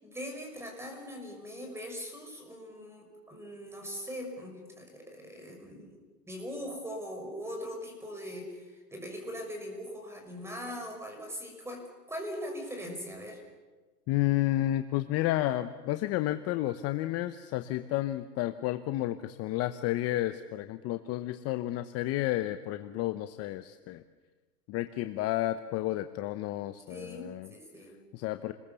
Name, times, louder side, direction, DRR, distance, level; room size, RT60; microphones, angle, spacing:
voice 1, 0.0-13.4 26.9-28.0, equal, 5° right, 3 dB, 5.9 m, -41 dB
voice 2, 14.1-24.0 24.7-27.5 28.1-28.5, left 15 dB, 30° left, 10 dB, 0.9 m, -31 dB
29.0 x 21.5 x 6.9 m, 1.3 s
hypercardioid pair, 130°, 47 cm